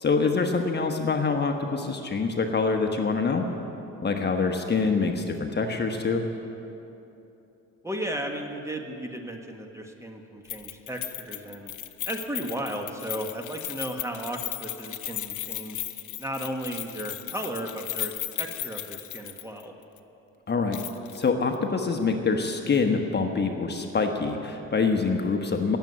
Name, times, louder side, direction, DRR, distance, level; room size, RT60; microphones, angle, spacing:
voice 1, 0.0-3.5 4.0-6.2 20.5-20.8 21.1-25.8, left 4 dB, 35° left, 4 dB, 1.2 m, -25 dB
voice 2, 7.8-11.7 12.1-15.8 16.2-19.7, right 1 dB, 10° right, 3 dB, 1.6 m, -35 dB
Keys jangling, 10.5-19.6 20.0-20.1 20.7-21.2 21.5-21.6, left 14 dB, 75° left, 0.8 m, -36 dB
17.5 x 7.6 x 9.8 m, 2.9 s
cardioid pair, 90°, 30 cm